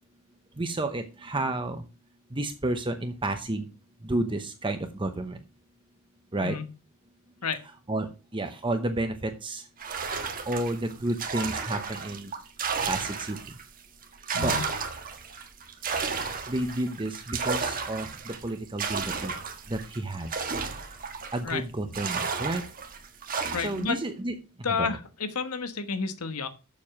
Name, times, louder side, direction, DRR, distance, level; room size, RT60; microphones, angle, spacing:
voice 1, 0.6-1.8 2.3-3.7 4.0-5.4 6.3-6.6 7.9-9.7 10.5-12.3 12.9-13.4 14.3-14.6 16.5-19.3 19.7-20.3 21.3-22.6 23.6-24.3 24.8-24.9, right 1 dB, 20° right, 7 dB, 0.8 m, -31 dB
sound 1, 9.8-13.6 14.0-21.5 21.9-23.9, right 5 dB, 40° right, 1.4 m, -33 dB
voice 2, 14.3-14.6 21.4-21.6 23.5-24.0 24.6-26.5, left 5 dB, 80° left, 10 dB, 1.3 m, -30 dB
7.2 x 6.9 x 6.0 m, 0.32 s
head